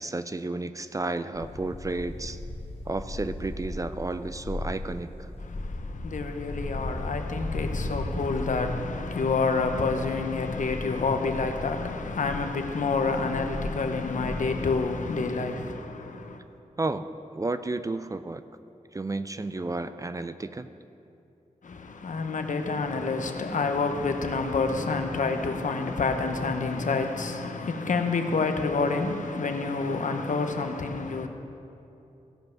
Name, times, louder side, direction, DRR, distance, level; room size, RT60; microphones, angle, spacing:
voice 1, 0.0-2.4 2.9-5.3 16.8-17.1 17.3-18.4 18.9-20.7, right 2 dB, 25° right, 0.3 m, -32 dB
sound 1, 1.3-15.0, left 2 dB, 45° left, 1.3 m, -37 dB
voice 2, 5.4-16.4 21.6-31.3, left 4 dB, 75° left, 0.8 m, -28 dB
16.0 x 5.4 x 5.9 m
wide cardioid pair, 120°, 13 cm